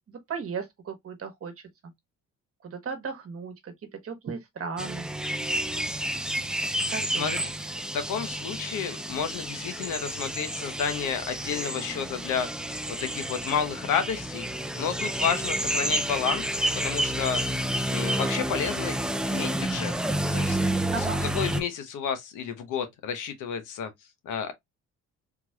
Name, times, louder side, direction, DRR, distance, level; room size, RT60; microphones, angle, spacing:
voice 1, 0.1-1.5 2.6-3.7 4.0-5.1 6.9-7.4 20.9-21.2, right 5 dB, 50° right, 1.2 m, -35 dB
sound 1, 4.8-21.6, right 1 dB, 5° right, 0.4 m, -30 dB
voice 2, 7.0-7.5 7.9-12.5 12.9-14.5 14.8-17.6 17.9-19.0 19.3-19.9 20.3-20.6 21.0-23.9 24.2-24.5, left 7 dB, 85° left, 0.9 m, -31 dB
3.6 x 3.0 x 2.2 m
cardioid pair, 90°, 30 cm